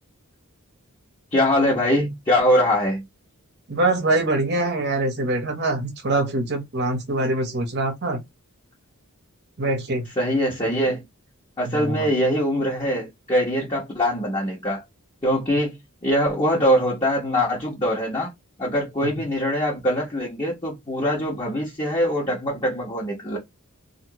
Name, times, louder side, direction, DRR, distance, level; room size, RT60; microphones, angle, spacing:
voice 1, 1.3-3.0 10.2-11.0 11.6-14.8 15.2-18.3 18.6-23.4, equal, 25° left, 1.3 m, -23 dB
voice 2, 3.7-8.2 9.6-10.1 11.7-12.1, right 2 dB, 50° right, 0.9 m, -24 dB
2.9 x 2.6 x 2.9 m
head